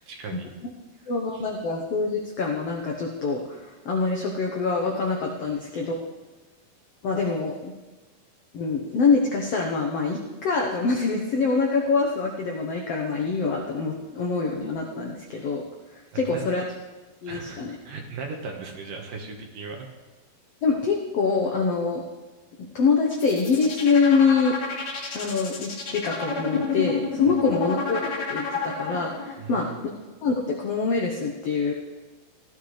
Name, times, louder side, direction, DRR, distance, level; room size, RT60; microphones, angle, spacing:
voice 1, 0.1-0.5 1.3-1.4 16.1-16.6 17.3-19.9 29.4-29.8, right 4 dB, 65° right, 1 dB, 2.8 m, -37 dB
voice 2, 1.1-6.0 7.0-7.7 8.5-15.6 16.1-16.6 17.2-17.8 20.6-22.0 22.7-24.6 25.1-29.7 30.2-31.7, left 4 dB, 85° left, 0 dB, 1.4 m, -25 dB
sound 1, 23.1-29.3, left 5 dB, 55° left, 3.2 m, -29 dB
17.0 x 12.5 x 3.3 m, 1.2 s
omnidirectional pair, 4.5 m